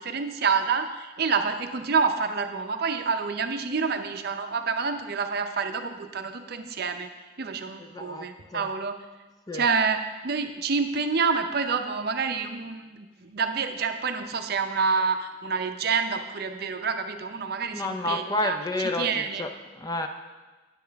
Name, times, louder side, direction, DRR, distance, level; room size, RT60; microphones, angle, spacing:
voice 1, 0.0-8.9 9.5-10.0 10.2-19.4, right 5 dB, 50° right, 7 dB, 0.5 m, -28 dB
voice 2, 7.9-8.7 9.5-9.7 17.7-20.1, left 2 dB, 20° left, 5 dB, 0.4 m, -30 dB
9.2 x 8.6 x 3.4 m, 1.2 s
head